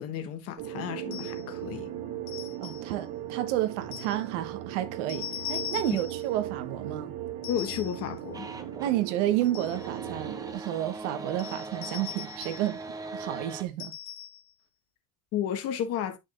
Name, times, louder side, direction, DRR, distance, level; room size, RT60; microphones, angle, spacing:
voice 1, 0.0-1.9 5.9-6.0 7.5-8.5 15.3-16.2, left 10 dB, 40° left, 1.4 m, -32 dB
sound 1, 0.6-10.5, right 11 dB, 60° right, 1.6 m, -38 dB
sound 2, 1.1-1.5 2.3-2.9 3.9-4.2 5.1-6.3 7.4-8.1 9.2-9.9 11.4-12.7 13.8-14.5, left 11 dB, 60° left, 1.3 m, -40 dB
voice 2, 2.6-7.1 8.8-12.8 13.1-13.9, right 13 dB, 85° right, 1.4 m, -31 dB
sound 3, 8.3-9.0 9.3-13.6, right 3 dB, 10° right, 0.6 m, -40 dB
10.0 x 5.9 x 2.6 m
cardioid pair, 180°, 35 cm